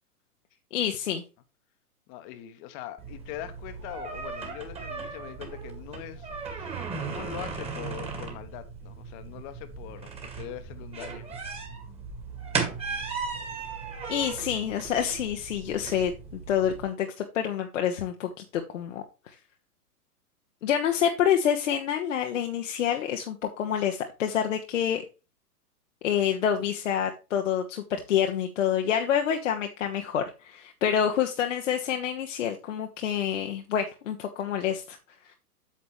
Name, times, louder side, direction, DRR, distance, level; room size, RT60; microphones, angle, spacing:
voice 1, 0.7-1.2 14.1-19.3 20.6-25.0 26.0-35.0, left 9 dB, 55° left, 1.1 m, -27 dB
voice 2, 2.1-11.3, left 11 dB, 30° left, 1.2 m, -42 dB
sound 1, 3.0-16.8, right 5 dB, 15° right, 1.8 m, -37 dB
8.6 x 6.6 x 3.1 m
figure-of-eight pair, 110°, 46 cm